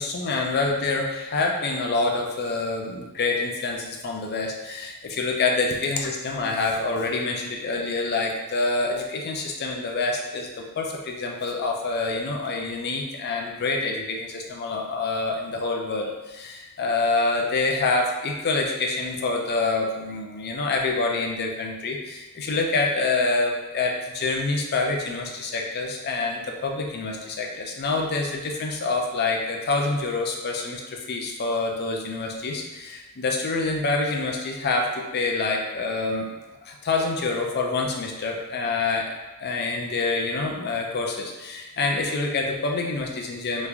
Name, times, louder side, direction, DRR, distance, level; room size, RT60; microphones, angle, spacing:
voice 1, 0.0-36.3 36.6-39.1 39.4-43.7, left 3 dB, 45° left, 1 dB, 0.5 m, -26 dB
3.1 x 2.5 x 3.4 m, 1.1 s
head